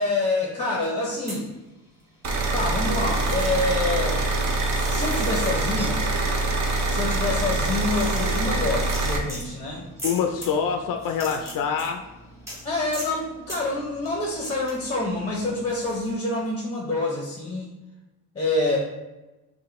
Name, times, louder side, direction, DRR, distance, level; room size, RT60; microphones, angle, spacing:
voice 1, 0.0-1.5 2.5-4.2 4.9-6.0 6.9-9.8 12.6-17.7 18.3-18.8, left 2 dB, 15° left, -2 dB, 0.7 m, -27 dB
sound 1, 1.1-2.2 2.5-16.1, equal, 10° right, 1.1 m, -42 dB
sound 2, 2.2-9.2, right 2 dB, 50° right, 0.7 m, -24 dB
sound 3, 4.6-8.8 9.1-10.1 10.3-10.4, right 1 dB, 80° right, 1.3 m, -47 dB
voice 2, 10.0-12.0, left 6 dB, 60° left, 4 dB, 0.5 m, -25 dB
5.7 x 2.2 x 3.0 m, 1.0 s
cardioid pair, 145°, 37 cm